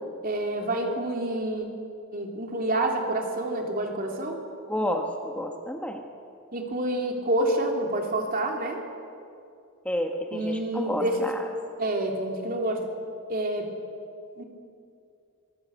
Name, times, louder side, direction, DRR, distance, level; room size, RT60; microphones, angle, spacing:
voice 1, 0.2-1.7 2.1-4.4 6.5-8.8 10.3-11.3 11.8-12.9 13.3-13.7 14.4-14.5, right 1 dB, 45° right, 2 dB, 3.2 m, -28 dB
voice 2, 4.7-6.0 9.8-11.4, equal, 5° left, 3 dB, 1.4 m, -30 dB
26.0 x 18.5 x 8.2 m, 2.5 s
head